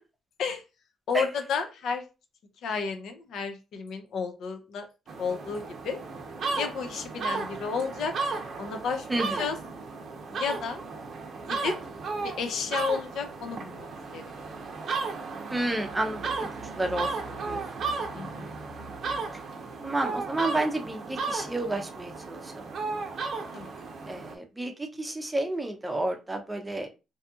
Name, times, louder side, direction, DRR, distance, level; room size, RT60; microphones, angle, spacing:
voice 1, 1.1-2.0 2.6-4.9 5.2-6.0 6.5-8.1 8.6-9.6 10.3-10.8 11.5-11.8 12.2-14.3 18.1-18.5 23.5-23.7, left 5 dB, 75° left, 6 dB, 0.5 m, -32 dB
sound 1, 5.1-24.4, right 4 dB, 60° right, 0.5 m, -35 dB
voice 2, 9.1-9.5 15.5-16.3 16.8-17.6 19.8-22.7 24.1-26.9, right 1 dB, 15° right, 4 dB, 0.6 m, -31 dB
2.6 x 2.3 x 2.7 m, 0.29 s
cardioid pair, 90°, 0 cm